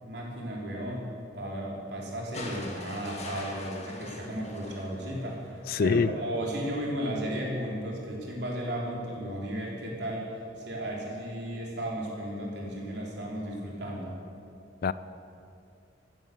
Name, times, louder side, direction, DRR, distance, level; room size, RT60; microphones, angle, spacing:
voice 1, 0.0-1.1 1.3-14.2, equal, 65° right, -2 dB, 3.5 m, -34 dB
sound 1, 2.3-5.6 7.0-7.1, left 2 dB, 35° left, 2.1 m, -42 dB
voice 2, 5.7-6.1 14.8-14.9, left 5 dB, 55° left, 16 dB, 0.4 m, -24 dB
16.0 x 9.0 x 7.7 m, 2.6 s
head